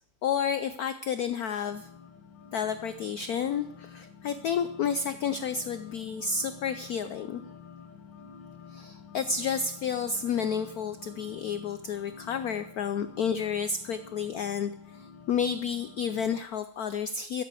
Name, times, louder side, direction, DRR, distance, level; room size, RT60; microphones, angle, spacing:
voice 1, 0.2-1.9 2.5-7.4 8.7-17.4, left 6 dB, 80° left, 11 dB, 0.8 m, -31 dB
sound 1, 1.7-16.4, left 6 dB, 65° left, 1.8 m, -49 dB
14.0 x 7.8 x 8.3 m, 0.74 s
omnidirectional pair, 2.3 m